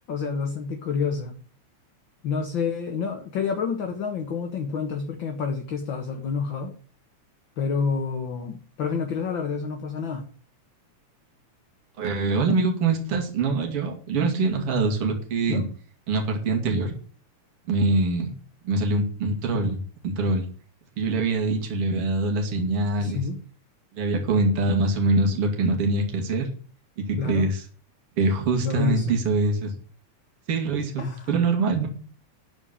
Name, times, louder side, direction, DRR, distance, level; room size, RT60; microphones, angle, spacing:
voice 1, 0.1-1.4 2.2-6.7 7.6-10.2 15.5-15.7 23.0-23.4 27.2-27.5 28.6-29.1 31.0-31.3, left 5 dB, 50° left, 3 dB, 1.8 m, -28 dB
voice 2, 12.0-15.7 16.1-16.9 17.7-18.3 18.6-20.5 21.0-23.2 23.9-26.5 27.0-27.6 28.2-29.7 30.5-31.9, right 3 dB, 50° right, 2 dB, 3.2 m, -24 dB
12.5 x 5.1 x 8.9 m, 0.42 s
omnidirectional pair, 3.4 m